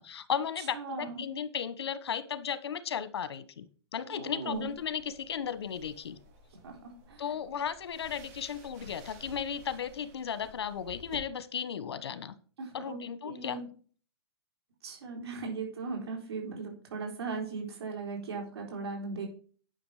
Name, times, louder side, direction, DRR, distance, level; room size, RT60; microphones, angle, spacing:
voice 1, 0.0-3.7 3.9-6.2 7.2-12.3 12.7-13.6, left 8 dB, 85° left, 14 dB, 1.2 m, -35 dB
voice 2, 0.6-1.2 4.0-4.7 6.6-7.2 12.6-13.7 14.8-19.3, right 4 dB, 80° right, 0 dB, 3.9 m, -38 dB
sound 1, 4.5-11.2, right 1 dB, 40° right, 3.2 m, -54 dB
10.5 x 6.1 x 4.9 m, 0.43 s
hypercardioid pair, 165°, 13 cm